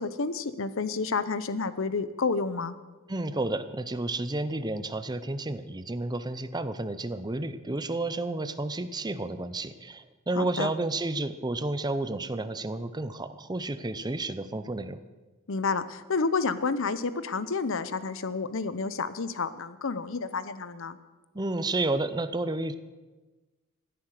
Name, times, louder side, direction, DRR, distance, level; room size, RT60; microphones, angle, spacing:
voice 1, 0.0-2.7 10.4-10.7 15.5-21.0, left 4 dB, 65° left, 14 dB, 0.8 m, -30 dB
voice 2, 3.1-15.0 21.3-22.7, right 2 dB, 20° right, 12 dB, 0.6 m, -31 dB
16.5 x 9.7 x 6.6 m, 1.2 s
head